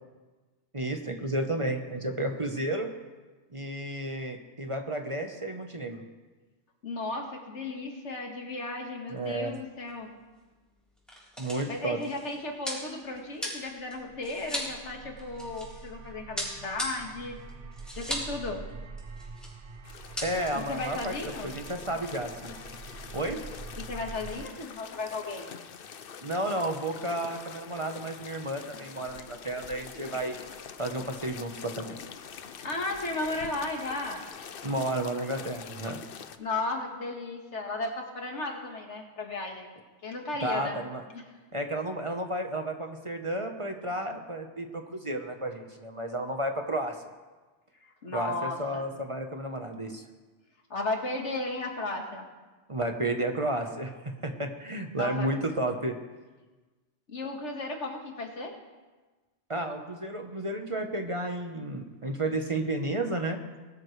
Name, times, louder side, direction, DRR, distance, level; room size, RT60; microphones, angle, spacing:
voice 1, 0.7-2.9 3.5-6.0 9.1-9.5 11.4-12.0 20.2-21.1 21.4-22.5 23.1-23.4 26.2-30.3 30.8-31.9 34.6-36.0 40.4-41.0 41.5-47.0 48.1-50.0 52.7-56.0 59.5-63.4, right 1 dB, 30° right, 4 dB, 1.0 m, -32 dB
voice 2, 6.8-10.1 11.7-17.4 17.9-18.6 20.5-21.5 23.8-25.5 32.5-34.2 36.4-39.7 40.0-40.8 41.1-41.2 48.0-48.9 50.7-52.3 55.0-55.3 57.1-58.5, left 2 dB, 90° left, 2 dB, 2.0 m, -35 dB
sound 1, 9.4-9.6 9.9-10.0 10.8-15.9 16.4-18.4 18.7-18.8 19.0-19.5 19.9-20.5, equal, ahead, 3.7 m, -37 dB
sound 2, 13.8-24.4, right 4 dB, 55° right, 1.0 m, -45 dB
sound 3, 19.8-36.4, left 7 dB, 55° left, 0.8 m, -45 dB
20.0 x 12.5 x 3.3 m, 1.3 s
omnidirectional pair, 1.2 m